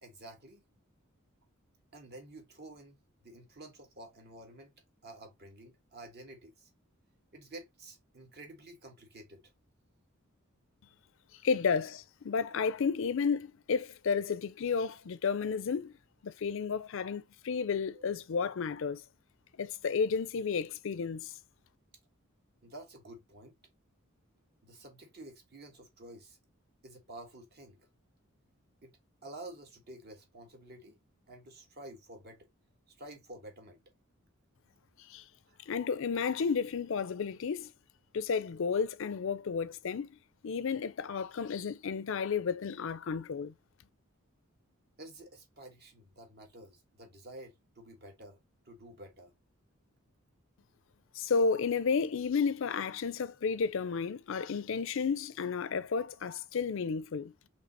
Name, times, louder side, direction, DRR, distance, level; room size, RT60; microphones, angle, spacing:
voice 1, 0.0-0.6 1.9-4.7 5.0-6.7 7.3-9.5 11.4-11.5 17.9-18.0 22.6-23.6 24.6-26.4 26.8-27.9 28.8-31.0 31.3-32.5 32.9-33.8 35.5-35.6 45.0-48.4 48.6-49.3, right 1 dB, 50° right, 1.4 m, -50 dB
voice 2, 11.4-15.9 16.2-19.0 19.6-21.3 35.1-35.2 35.7-37.7 38.1-40.2 40.4-43.5 51.1-57.3, left 5 dB, 65° left, 0.5 m, -32 dB
5.2 x 3.2 x 2.7 m
head